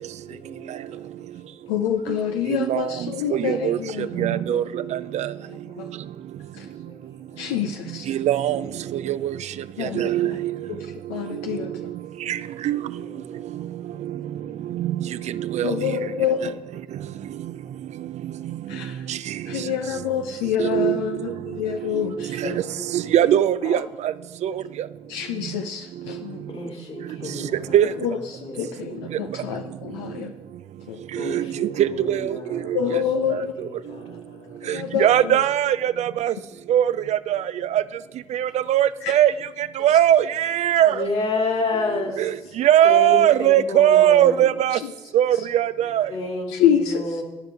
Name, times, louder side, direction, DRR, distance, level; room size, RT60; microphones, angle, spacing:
voice 1, 0.2-1.6 6.6-7.0 7.3-7.6 12.3-15.9 17.0-18.0 18.3-18.6 20.6-20.7 21.3-21.4 22.0-23.3 26.5-28.9 31.1-34.6 40.9-42.6 42.8-44.4 46.1-47.2, left 3 dB, 55° left, 2.4 m, -33 dB
voice 2, 1.7-4.6 5.8-5.9 6.5-6.7 7.4-8.2 9.8-10.4 11.1-11.9 15.6-16.6 18.7-19.0 19.5-22.6 23.7-23.8 25.1-26.4 28.0-28.2 28.6-30.3 30.9-31.0 32.7-33.5 34.6-35.4 39.0-39.1 46.6-47.0, left 9 dB, 85° left, 0.4 m, -27 dB
voice 3, 3.3-3.8 4.2-5.3 8.1-8.6 8.9-9.3 9.8-10.5 12.3-12.4 12.6-12.8 14.7-14.9 15.4-15.8 19.1-19.2 20.6-21.0 22.4-22.5 22.9-24.1 24.4-24.5 27.7-27.9 31.1-32.8 33.3-33.4 34.7-36.3 36.7-37.4 37.7-37.8 38.3-39.3 39.8-40.9 42.2-44.8 45.1-46.1, right 11 dB, 60° right, 0.4 m, -20 dB
12.0 x 5.0 x 4.7 m
hypercardioid pair, 45°, 13 cm